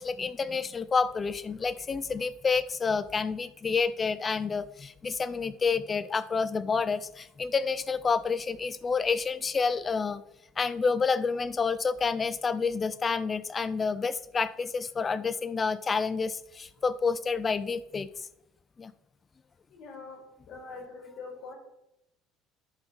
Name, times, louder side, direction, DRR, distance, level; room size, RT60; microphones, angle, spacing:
voice 1, 0.0-10.2 10.6-18.1 18.8-18.9, left 5 dB, 30° left, 16 dB, 0.6 m, -29 dB
voice 2, 19.7-20.2 20.5-21.6, left 4 dB, 60° left, 0 dB, 4.1 m, -43 dB
11.0 x 4.9 x 5.5 m, 0.86 s
supercardioid pair, 90°, 0 cm